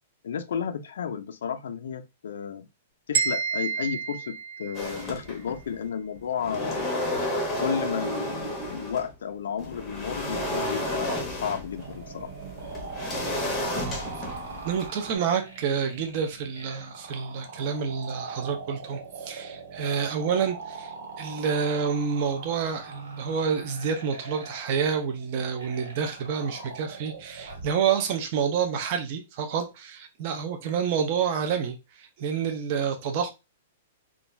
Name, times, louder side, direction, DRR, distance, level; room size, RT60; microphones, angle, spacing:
voice 1, 0.2-2.7 3.1-6.8 7.6-12.3, left 7 dB, 70° left, 0.4 m, -32 dB
sound 1, 3.1-5.1, right 6 dB, 60° right, 1.1 m, -29 dB
sound 2, 4.7-5.7 6.2-9.1 9.6-15.2, left 1 dB, 10° left, 0.6 m, -32 dB
sound 3, 11.8-27.7, right 4 dB, 80° right, 1.5 m, -41 dB
voice 2, 14.6-20.9 21.2-33.3, right 6 dB, 30° right, 0.4 m, -28 dB
2.4 x 2.2 x 3.1 m
hypercardioid pair, 180°, 0 cm